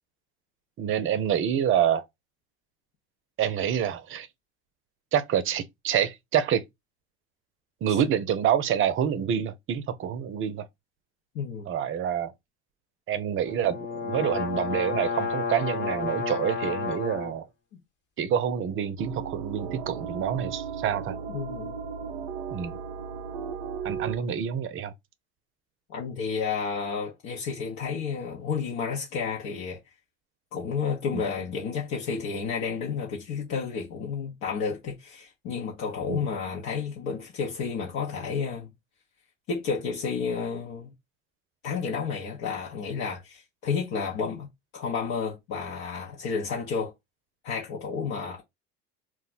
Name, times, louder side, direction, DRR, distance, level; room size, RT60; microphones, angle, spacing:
voice 1, 0.8-2.1 3.4-4.3 5.1-6.6 7.8-10.7 11.7-12.3 13.1-13.8 14.0-17.4 18.2-21.2 22.5-22.8 23.8-24.9 31.1-31.2 36.1-36.2, right 9 dB, 45° right, 0.5 m, -27 dB
voice 2, 11.3-11.7 21.3-21.8 25.9-29.8 30.5-38.7 39.5-40.9 41.6-44.5 44.7-46.9 47.4-48.4, left 5 dB, 65° left, 0.9 m, -31 dB
sound 1, 13.4-17.3, left 5 dB, 35° left, 1.0 m, -31 dB
sound 2, 19.0-24.2, right 6 dB, 85° right, 0.5 m, -36 dB
2.4 x 2.1 x 3.9 m
hypercardioid pair, 80°, 30 cm